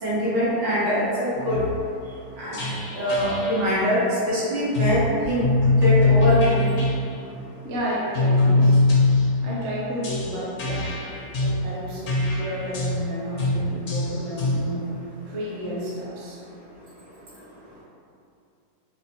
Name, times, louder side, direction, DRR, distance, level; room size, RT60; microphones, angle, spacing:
voice 1, 0.0-1.6 2.4-2.7 2.9-4.0 4.3-5.5 5.8-6.7, equal, 90° right, -10 dB, 1.9 m, -23 dB
sound 1, 1.3-1.8 2.5-3.7 4.7-5.0 5.4-7.0 8.1-9.4 10.0-11.6 12.1-13.0 13.4-13.6 13.9-14.6, left 2 dB, 70° left, 0.6 m, -22 dB
voice 2, 7.6-8.8 9.4-11.0 11.4-14.9 15.3-16.4, equal, 55° right, -6 dB, 0.8 m, -31 dB
4.9 x 2.0 x 2.7 m, 2.5 s
omnidirectional pair, 1.9 m